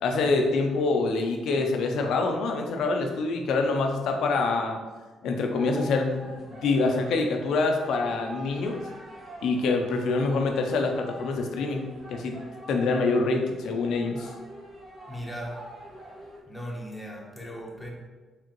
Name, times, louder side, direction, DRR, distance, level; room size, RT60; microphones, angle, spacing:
voice 1, 0.0-4.8 5.2-8.8 9.4-12.4 12.7-14.3, left 3 dB, 75° left, 3 dB, 0.7 m, -26 dB
sound 1, 5.5-16.4, equal, 45° right, 1.3 m, -45 dB
voice 2, 15.1-15.6 16.5-17.9, equal, ahead, -3 dB, 1.1 m, -37 dB
4.9 x 3.4 x 3.1 m, 1.3 s
cardioid pair, 90°, 0 cm